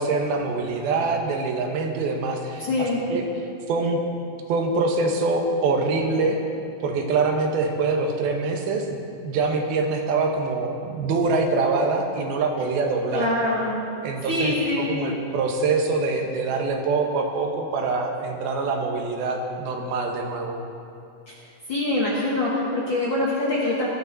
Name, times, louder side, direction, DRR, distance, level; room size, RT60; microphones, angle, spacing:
voice 1, 0.0-3.3 3.7-4.0 4.5-6.4 6.8-9.0 9.2-13.3 14.0-20.6, right 3 dB, 85° right, 3 dB, 3.1 m, -24 dB
voice 2, 2.7-3.0 13.1-13.8 14.3-14.9 21.3-21.4 21.7-23.9, left 2 dB, 50° left, -5 dB, 1.6 m, -24 dB
17.5 x 13.0 x 4.0 m, 2.5 s
omnidirectional pair, 4.2 m